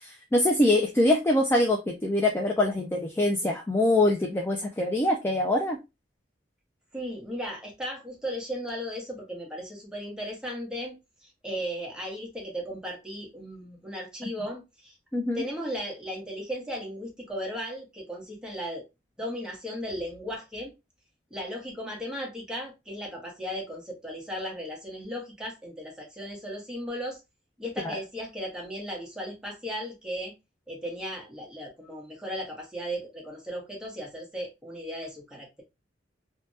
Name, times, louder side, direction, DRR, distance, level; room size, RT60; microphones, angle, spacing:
voice 1, 0.0-5.8 15.1-15.4 27.8-27.9, left 1 dB, 10° left, 0.3 m, -24 dB
voice 2, 6.9-14.9 15.3-18.8 19.2-20.7 21.3-27.2 27.6-30.3 30.7-35.6, equal, 5° right, 1.1 m, -36 dB
3.3 x 2.2 x 2.6 m
head